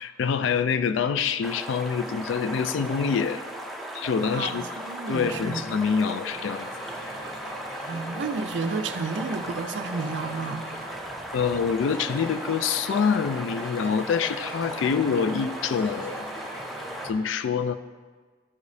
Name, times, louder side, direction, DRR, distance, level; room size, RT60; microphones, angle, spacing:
voice 1, 0.0-3.4 3.9-4.6 5.1-6.7 11.3-16.3 17.0-17.8, left 6 dB, 70° left, 12 dB, 0.3 m, -26 dB
sound 1, 1.4-17.1, equal, ahead, 0.4 m, -37 dB
voice 2, 4.3-5.6 7.9-10.6, right 4 dB, 65° right, 9 dB, 0.4 m, -31 dB
sound 2, 6.3-17.1, right 1 dB, 25° left, 1.4 m, -43 dB
11.0 x 5.0 x 2.7 m, 1.5 s
head